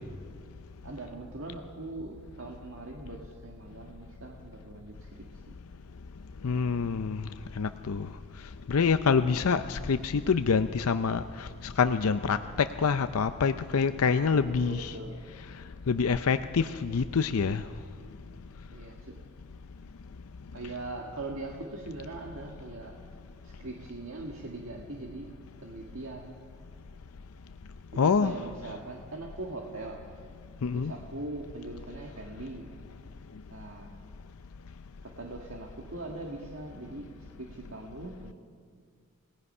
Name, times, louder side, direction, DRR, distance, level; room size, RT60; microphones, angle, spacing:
voice 1, 0.8-5.1 5.5-5.6 14.0-15.2 18.7-19.2 20.5-22.9 23.4-25.2 25.6-26.4 27.9-30.0 30.7-32.7 33.5-34.0 35.0-37.0 37.3-38.3, right 2 dB, 65° right, 0 dB, 1.8 m, -41 dB
voice 2, 6.4-7.3 7.6-8.1 8.7-14.9 15.9-17.6 28.0-28.3 30.6-30.9, left 5 dB, 80° left, 10 dB, 0.5 m, -26 dB
29.0 x 18.0 x 5.5 m, 2.1 s
head